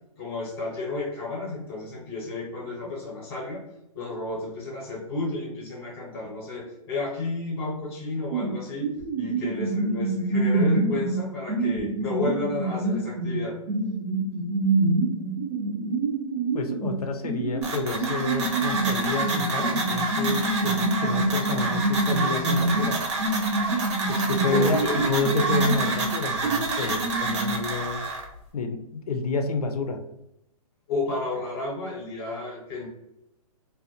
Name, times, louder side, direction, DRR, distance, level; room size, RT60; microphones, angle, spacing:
voice 1, 0.2-3.6 3.9-13.6 24.4-25.0 26.8-26.9 30.9-32.9, left 3 dB, 20° left, -4 dB, 0.7 m, -32 dB
sound 1, 8.3-8.6 8.8-13.4 13.7-17.0 17.2-26.1 26.4-27.6, right 2 dB, 20° right, 0.3 m, -26 dB
voice 2, 16.5-23.0 24.1-24.8 25.0-28.0 28.5-30.0, left 3 dB, 90° left, 5 dB, 0.5 m, -29 dB
sound 2, 17.6-28.2, right 3 dB, 50° right, 0.7 m, -29 dB
2.5 x 2.1 x 2.7 m, 0.82 s
hypercardioid pair, 175°, 19 cm